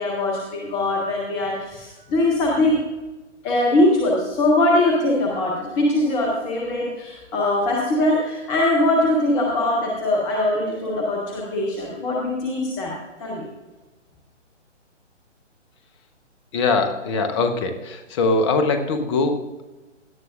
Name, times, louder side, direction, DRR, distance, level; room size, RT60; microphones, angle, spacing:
voice 1, 0.0-2.8 3.4-12.9 13.2-13.4, left 1 dB, 5° left, -2 dB, 0.5 m, -21 dB
voice 2, 16.5-19.6, left 3 dB, 25° left, 7 dB, 1.0 m, -22 dB
17.0 x 11.0 x 2.5 m, 1.1 s
figure-of-eight pair, 135°, 36 cm